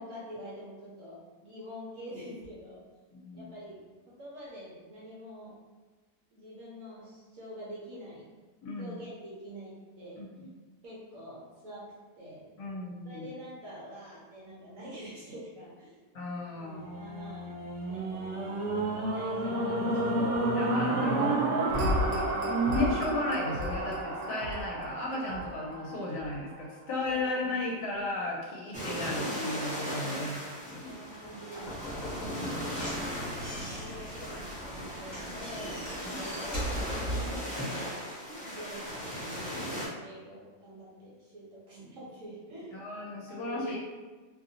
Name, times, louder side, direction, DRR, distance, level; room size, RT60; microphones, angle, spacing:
voice 1, 0.0-2.8 3.3-3.8 4.2-5.6 6.3-8.3 8.8-10.2 10.8-11.9 12.2-12.5 13.0-16.0 16.9-17.6 17.8-22.1 27.0-27.7 30.0-38.1 38.4-42.8 43.3-43.8, equal, 60° right, -7 dB, 1.0 m, -45 dB
voice 2, 3.1-3.4 8.6-9.0 10.2-10.5 12.6-13.3 16.1-16.9 20.6-21.3 22.4-30.9 32.2-32.8 36.0-36.2 42.7-43.8, left 1 dB, 70° left, -3 dB, 1.1 m, -35 dB
sound 1, 16.7-26.9 27.5-27.6, right 1 dB, 90° right, 0.6 m, -31 dB
sound 2, 28.7-39.9, equal, 10° left, 0.5 m, -38 dB
Slam / Knock, 31.6-37.4, equal, 30° left, 1.0 m, -38 dB
2.9 x 2.6 x 2.6 m, 1.3 s
omnidirectional pair, 1.8 m